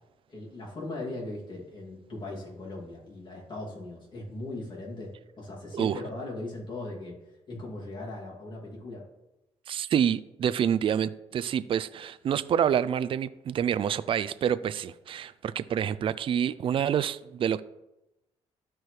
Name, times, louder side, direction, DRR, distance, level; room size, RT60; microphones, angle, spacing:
voice 1, 0.3-7.2 7.5-9.0, left 2 dB, 40° left, 2.5 m, -39 dB
voice 2, 9.7-17.6, right 9 dB, 50° right, 0.3 m, -27 dB
13.0 x 4.5 x 3.2 m
cardioid pair, 95°, 12 cm